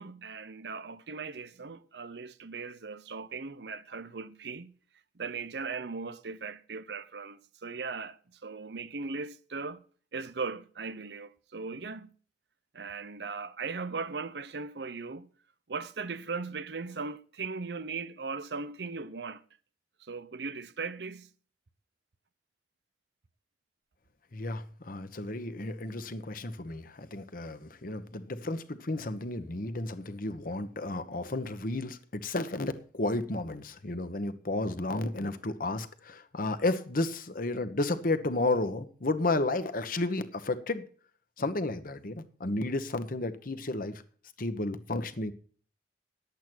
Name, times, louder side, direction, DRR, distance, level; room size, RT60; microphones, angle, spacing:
voice 1, 0.0-4.7 5.2-9.8 10.1-12.1 12.7-15.3 15.7-19.4 20.0-21.3, right 4 dB, 70° right, 0.7 m, -38 dB
voice 2, 24.3-40.8 41.4-44.0 44.4-45.3, left 2 dB, 55° left, 1.1 m, -32 dB
10.5 x 8.2 x 6.2 m
head